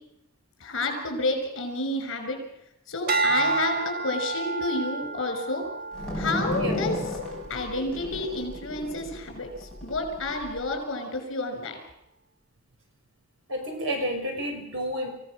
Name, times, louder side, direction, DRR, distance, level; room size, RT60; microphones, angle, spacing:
voice 1, 0.6-2.4 2.9-5.6 6.1-6.9 7.5-11.8, left 2 dB, 55° left, 6 dB, 6.2 m, -30 dB
sound 1, 3.1-7.5 8.1-8.5, right 3 dB, 45° right, 1.2 m, -30 dB
sound 2, 5.9-10.6, left 1 dB, 5° left, 6.1 m, -33 dB
voice 2, 13.5-15.1, equal, 60° right, 2 dB, 6.0 m, -30 dB
26.5 x 16.5 x 6.5 m, 0.80 s
head